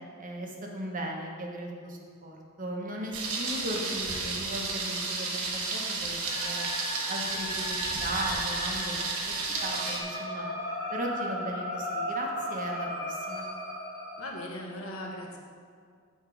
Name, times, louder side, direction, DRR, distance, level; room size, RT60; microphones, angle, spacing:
voice 1, 0.2-9.3 9.6-10.5 10.9-13.5, right 1 dB, 40° right, 0 dB, 1.0 m, -37 dB
Thunder, 3.1-10.0, right 3 dB, 75° right, 1.1 m, -32 dB
sound 1, 6.2-14.3, left 1 dB, 45° left, 1.6 m, -36 dB
voice 2, 14.2-15.4, left 1 dB, 75° left, 0 dB, 1.2 m, -38 dB
7.0 x 4.4 x 6.0 m, 2.1 s
head